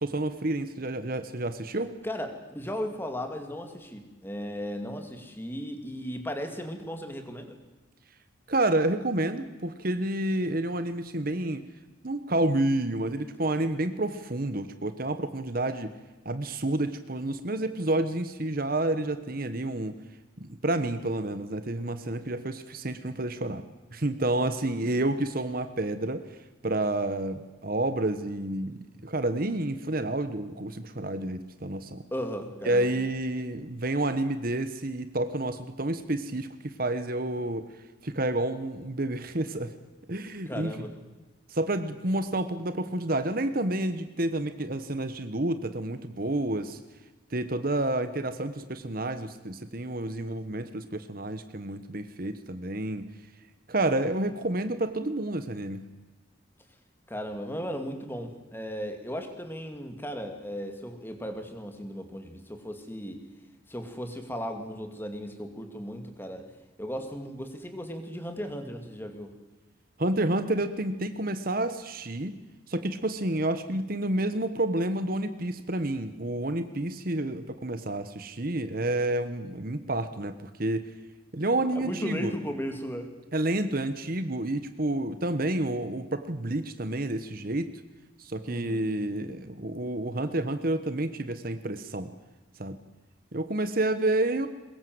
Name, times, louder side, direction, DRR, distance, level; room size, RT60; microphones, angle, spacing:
voice 1, 0.0-2.0 8.5-11.6 12.0-15.9 16.2-20.0 20.4-23.6 23.9-26.2 26.6-32.0 32.6-37.7 38.0-39.7 40.1-40.9 41.5-46.8 47.3-53.1 53.7-55.8 70.0-72.4 72.7-80.9 81.3-82.3 83.3-87.7 88.2-92.1 92.6-92.8 93.3-94.5, right 1 dB, 45° right, 10 dB, 1.2 m, -29 dB
voice 2, 2.0-7.6 24.4-25.0 32.1-32.9 40.5-41.0 57.1-63.2 63.7-66.5 66.8-69.3 81.7-83.1 88.4-88.8, equal, 10° left, 6 dB, 2.5 m, -36 dB
23.0 x 21.5 x 7.9 m, 1.1 s
head